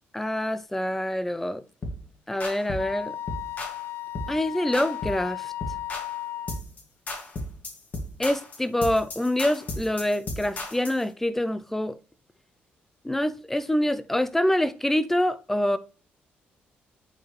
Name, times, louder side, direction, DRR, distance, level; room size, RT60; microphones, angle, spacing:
voice 1, 0.1-1.6 2.3-3.2 4.3-5.5 8.2-12.0 13.0-15.8, left 1 dB, 5° left, 0.7 m, -26 dB
sound 1, 1.8-2.0 2.4-2.9 3.3-3.8 4.1-4.4 4.7-5.3 5.6-6.1 6.5-6.8 7.1-11.0, left 1 dB, 45° left, 2.3 m, -35 dB
Wind instrument woodwind instrument, 2.8-6.6, left 13 dB, 70° left, 0.6 m, -35 dB
8.9 x 4.7 x 3.3 m
cardioid pair, 110°, 4 cm